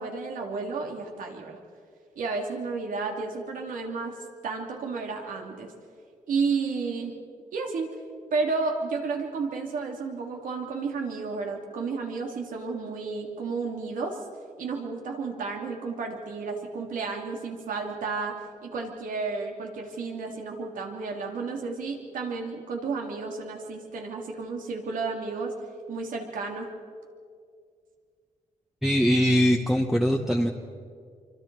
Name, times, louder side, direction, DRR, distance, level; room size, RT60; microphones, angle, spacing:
voice 1, 0.0-1.6 2.2-4.2 4.4-5.7 6.3-7.1 7.5-7.9 8.3-14.2 14.6-25.5 25.9-26.7, right 4 dB, 85° right, 2 dB, 2.9 m, -32 dB
voice 2, 28.8-30.5, equal, ahead, 0 dB, 1.1 m, -22 dB
26.5 x 25.0 x 4.8 m, 2.2 s
cardioid pair, 110°, 14 cm